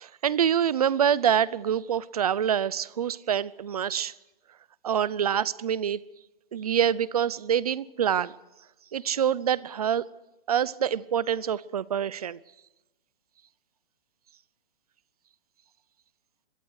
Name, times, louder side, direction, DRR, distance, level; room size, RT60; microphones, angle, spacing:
voice 1, 0.0-4.1 4.8-6.0 6.5-8.3 8.9-10.0 10.5-12.4, right 9 dB, 40° right, 0.7 m, -26 dB
25.5 x 22.0 x 4.8 m
hypercardioid pair, 175°, 29 cm